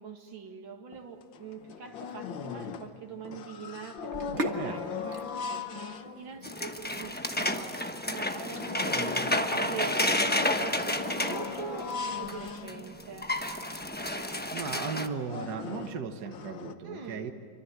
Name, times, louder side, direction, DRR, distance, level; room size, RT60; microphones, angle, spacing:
voice 1, 0.0-13.3 16.8-17.3, right 5 dB, 85° right, 4 dB, 2.8 m, -43 dB
sound 1, 0.9-1.0 1.3-3.0 3.2-6.5 7.0-7.1 7.5-7.6 8.1-13.3 13.8-13.9 14.2-14.4 14.9-16.7, left 6 dB, 75° left, 1.8 m, -39 dB
Sink (filling or washing), 4.0-14.8, right 1 dB, 35° right, 1.9 m, -43 dB
voice 2, 4.5-5.0 14.1-17.3, right 6 dB, 60° right, 6 dB, 1.8 m, -37 dB
sound 2, 6.4-12.3 12.7-12.8 13.0-15.1, left 1 dB, 10° left, 0.7 m, -30 dB
27.0 x 24.5 x 8.1 m, 2.2 s
omnidirectional pair, 2.1 m